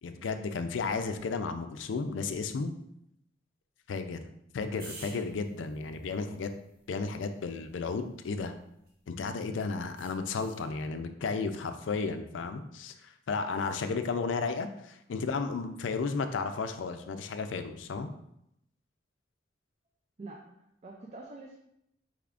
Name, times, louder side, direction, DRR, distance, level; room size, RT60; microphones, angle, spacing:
voice 1, 0.0-2.7 3.9-4.2 4.5-6.5 6.9-8.5 9.1-18.1, left 4 dB, 85° left, 8 dB, 0.4 m, -33 dB
sound 1, 4.8-9.2 10.0-10.7 13.5-13.8, right 2 dB, 55° right, 0.9 m, -54 dB
voice 2, 20.2-21.6, right 2 dB, 35° right, -1 dB, 0.4 m, -46 dB
4.8 x 3.4 x 2.4 m, 0.79 s
head